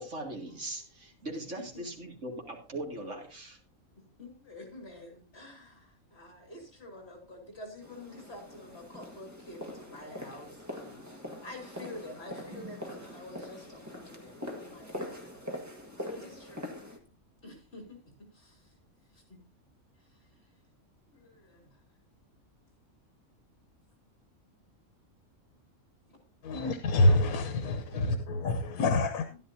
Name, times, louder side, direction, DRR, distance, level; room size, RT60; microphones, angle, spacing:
voice 1, 0.0-3.6, right 1 dB, 55° right, 2.8 m, -40 dB
voice 2, 1.3-2.1 4.2-11.1 11.4-15.4 16.0-16.7 17.4-18.0 18.3-18.7 19.1-19.4 20.0-20.3 21.1-21.8 29.3-29.4, left 1 dB, 45° left, 3.7 m, -48 dB
sound 1, 7.8-17.0, left 1 dB, 10° right, 1.6 m, -43 dB
voice 3, 26.4-29.3, left 2 dB, 90° left, 1.3 m, -26 dB
13.5 x 11.0 x 2.7 m
omnidirectional pair, 1.5 m